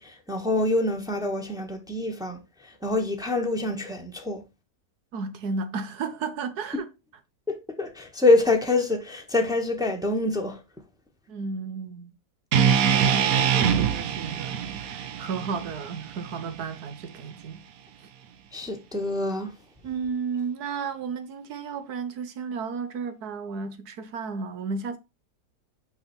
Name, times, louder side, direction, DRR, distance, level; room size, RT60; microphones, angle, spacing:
voice 1, 0.0-4.4 7.5-10.6 18.5-19.5, left 2 dB, 5° right, 1.1 m, -26 dB
voice 2, 5.1-6.8 11.3-12.1 12.8-17.6 19.8-25.0, right 5 dB, 85° right, 1.6 m, -33 dB
sound 1, 12.5-16.7, right 8 dB, 70° right, 1.2 m, -24 dB
6.1 x 5.0 x 4.4 m
omnidirectional pair, 1.6 m